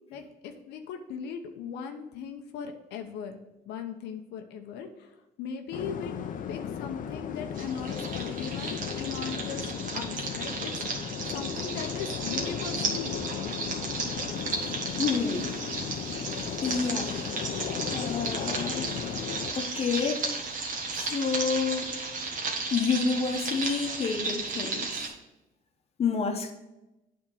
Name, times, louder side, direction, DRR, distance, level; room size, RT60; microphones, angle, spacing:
voice 1, 0.1-6.1 6.5-10.8 11.3-13.5, left 7 dB, 85° left, 5 dB, 0.8 m, -39 dB
sound 1, 5.7-19.5, left 8 dB, 50° left, 0.6 m, -36 dB
sound 2, 7.5-25.1, right 3 dB, 50° right, 1.4 m, -34 dB
voice 2, 14.9-15.6 16.6-17.4 17.9-19.0 19.5-20.3 20.9-22.2 22.7-25.1 26.0-26.5, left 5 dB, 35° left, 4 dB, 1.0 m, -29 dB
8.5 x 3.7 x 6.3 m, 0.97 s
cardioid pair, 110°, 17 cm